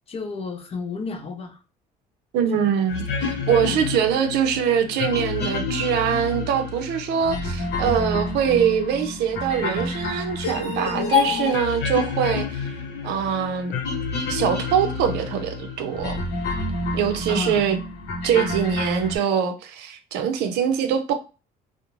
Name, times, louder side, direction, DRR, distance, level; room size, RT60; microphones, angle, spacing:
voice 1, 0.1-1.6 2.5-2.7 3.2-3.9 17.3-17.6, left 4 dB, 35° left, 0.5 m, -33 dB
voice 2, 2.3-12.7 13.0-13.7 14.3-16.2 16.9-17.8 18.2-21.1, right 8 dB, 85° right, 0.5 m, -23 dB
sound 1, 2.9-19.2, left 4 dB, 75° left, 0.7 m, -28 dB
2.4 x 2.1 x 2.9 m
cardioid pair, 110°, 17 cm